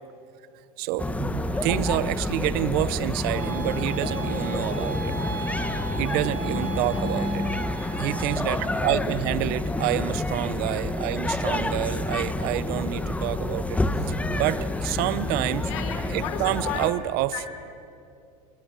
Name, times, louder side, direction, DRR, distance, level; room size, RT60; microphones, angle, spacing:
voice 1, 0.8-5.1 5.4-5.5 6.0-7.4 8.0-13.8 14.3-15.7 16.1-17.3, right 15 dB, 55° right, 17 dB, 0.8 m, -28 dB
sound 1, 1.0-16.9, left 2 dB, 5° left, 1.1 m, -28 dB
sound 2, 3.3-8.4, right 8 dB, 80° right, 2.9 m, -36 dB
sound 3, 4.7-10.2, right 1 dB, 40° right, 3.5 m, -50 dB
voice 2, 6.9-7.5 9.3-9.4 14.3-14.4 15.6-16.9 17.3-17.4, left 9 dB, 70° left, 6 dB, 3.3 m, -36 dB
28.0 x 20.0 x 6.8 m, 2.6 s
supercardioid pair, 110°, 18 cm